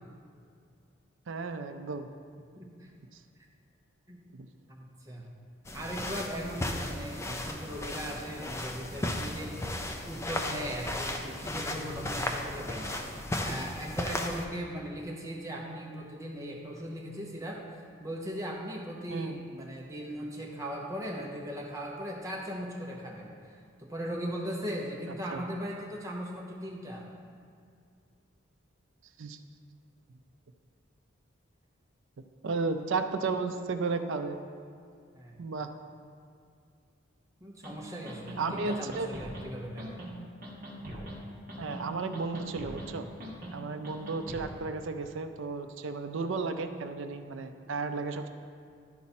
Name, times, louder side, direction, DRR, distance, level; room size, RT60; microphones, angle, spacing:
voice 1, 1.3-2.1 4.3-4.5 19.1-19.4 25.1-25.4 29.2-29.4 32.2-34.4 35.4-35.7 38.4-39.1 41.6-43.1 43.5-48.3, right 4 dB, 70° right, 8 dB, 0.5 m, -34 dB
voice 2, 2.6-2.9 4.1-4.2 4.7-5.3 5.7-9.7 10.0-17.6 18.0-27.1 35.1-35.4 37.4-40.0, equal, 15° right, -2 dB, 0.8 m, -38 dB
sound 1, 5.7-14.5, left 1 dB, 15° left, 0.4 m, -35 dB
sound 2, 37.6-37.7 38.1-38.4 38.7-39.5 39.8-40.1 40.4-41.2 41.5-41.9 42.1-42.9 43.2-43.5 43.8-44.5, equal, 45° right, 1.1 m, -42 dB
11.5 x 4.2 x 4.2 m, 2.3 s
head